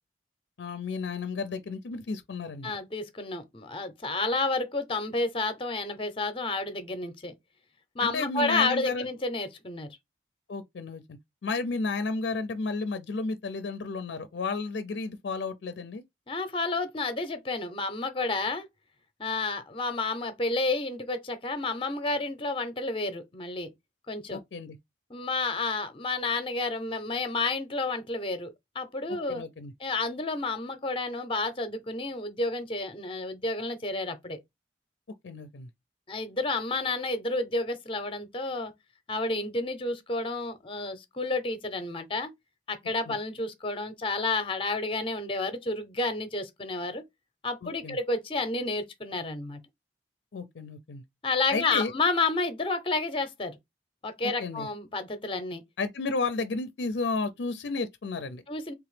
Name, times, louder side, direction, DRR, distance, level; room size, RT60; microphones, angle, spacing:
voice 1, 0.6-2.7 8.0-9.1 10.5-16.0 24.3-24.8 29.1-29.7 35.2-35.7 43.1-43.2 47.6-48.0 50.3-51.0 51.5-51.9 54.4-54.7 55.8-58.4, left 3 dB, 65° left, 0.5 m, -32 dB
voice 2, 2.6-7.3 7.9-9.9 16.3-18.7 19.2-23.7 24.1-24.4 25.1-29.4 29.8-34.4 36.1-38.7 39.1-42.3 42.7-47.0 47.4-49.6 51.2-53.6 54.0-55.6 58.5-58.7, left 3 dB, 30° left, 0.7 m, -30 dB
3.5 x 2.9 x 3.2 m
head